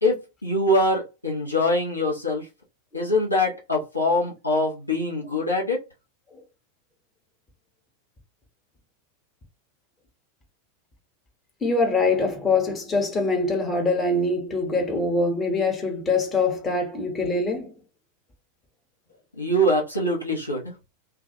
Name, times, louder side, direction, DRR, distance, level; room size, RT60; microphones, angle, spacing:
voice 1, 0.0-2.5 2.9-5.8 19.4-20.8, left 1 dB, 85° left, 0.8 m, -23 dB
voice 2, 11.6-17.7, left 3 dB, 20° left, 0.9 m, -23 dB
2.3 x 2.2 x 2.7 m
figure-of-eight pair, 90°, 0 cm